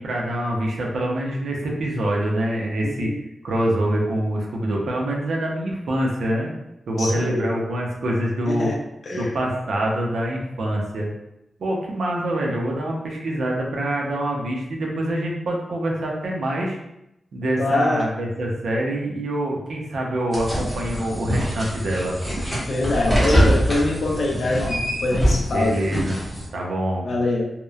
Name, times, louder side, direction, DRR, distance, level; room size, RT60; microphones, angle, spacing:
voice 1, 0.0-3.1 3.4-6.5 6.9-8.7 9.1-11.1 11.6-16.8 17.3-22.2 25.5-26.2 26.5-27.1, right 1 dB, 75° right, -1 dB, 0.5 m, -25 dB
voice 2, 2.8-3.2 7.0-7.5 8.5-8.8 9.1-9.3 17.6-18.0 22.6-25.8 27.0-27.4, left 2 dB, 50° left, -1 dB, 0.5 m, -24 dB
sound 1, 20.3-26.5, equal, ahead, 0.8 m, -23 dB
2.9 x 2.0 x 2.3 m, 0.86 s
wide cardioid pair, 165°, 0 cm